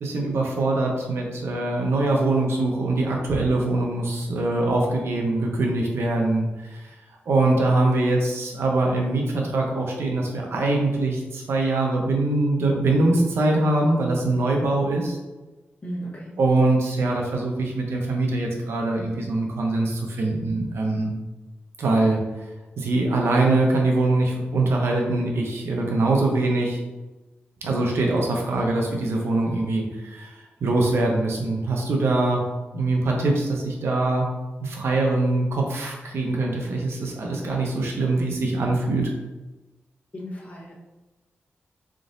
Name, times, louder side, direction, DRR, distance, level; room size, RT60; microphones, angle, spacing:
voice 1, 0.0-6.9 7.3-15.2 16.4-21.1 21.8-22.2 22.8-26.8 27.6-32.4 32.7-34.3 34.6-39.1, right 2 dB, 85° right, 0 dB, 0.7 m, -23 dB
voice 2, 15.8-16.3 40.1-40.8, right 1 dB, 35° left, -4 dB, 1.1 m, -35 dB
3.9 x 3.7 x 2.6 m, 1.1 s
wide cardioid pair, 95°, 4 cm